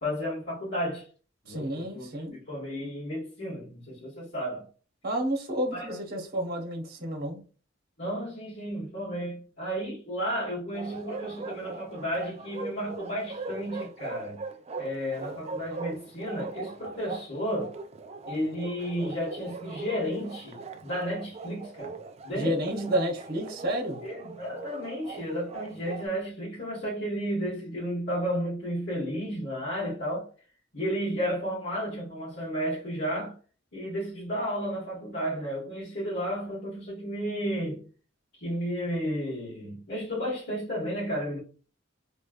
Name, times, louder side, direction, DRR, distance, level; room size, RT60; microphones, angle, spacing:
voice 1, 0.0-1.1 1.4-2.1 2.5-4.7 5.7-6.0 8.0-14.4 14.8-17.7 18.3-22.9 24.0-30.3 30.7-33.4 33.7-37.8 38.3-41.4, equal, 60° left, 1.6 m, -33 dB
voice 2, 1.5-2.4 5.0-7.4 22.3-24.0, right 1 dB, 50° right, 1.1 m, -30 dB
Bark, 10.7-26.1, right 4 dB, 35° right, 0.3 m, -40 dB
3.2 x 3.1 x 2.4 m
head